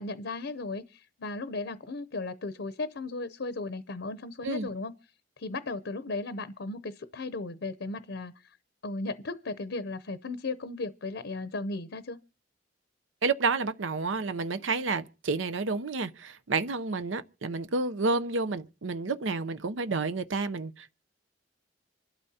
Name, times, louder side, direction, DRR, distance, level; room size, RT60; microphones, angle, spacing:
voice 1, 0.0-4.9 5.4-8.6 8.8-12.2, left 3 dB, 65° left, 0.7 m, -36 dB
voice 2, 13.2-20.9, right 3 dB, 90° right, 0.7 m, -30 dB
26.0 x 12.0 x 2.8 m
head